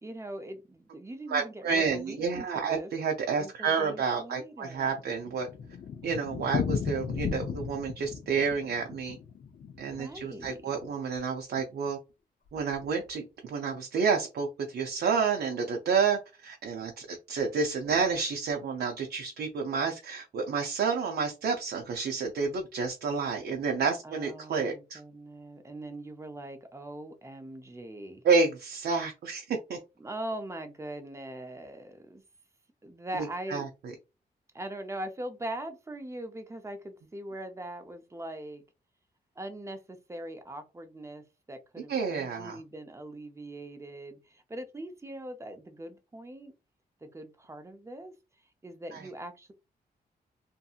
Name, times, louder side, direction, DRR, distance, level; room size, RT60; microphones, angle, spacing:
voice 1, 0.0-2.9 3.3-4.9 10.0-10.8 24.0-28.2 30.0-32.2 32.8-33.7 34.5-38.6 39.4-46.5 47.0-48.1 48.6-49.5, right 1 dB, 15° right, 0.5 m, -41 dB
voice 2, 1.3-5.5 6.0-9.2 9.8-12.0 12.5-25.0 28.2-29.8 33.1-33.7 41.9-42.6 48.9-49.0, right 5 dB, 75° right, 0.5 m, -30 dB
Thunder, 4.6-10.9 11.2-11.3 11.5-11.6 11.9-12.0 12.6-12.9, left 7 dB, 55° left, 0.4 m, -35 dB
2.7 x 2.6 x 2.3 m
cardioid pair, 100°, 17 cm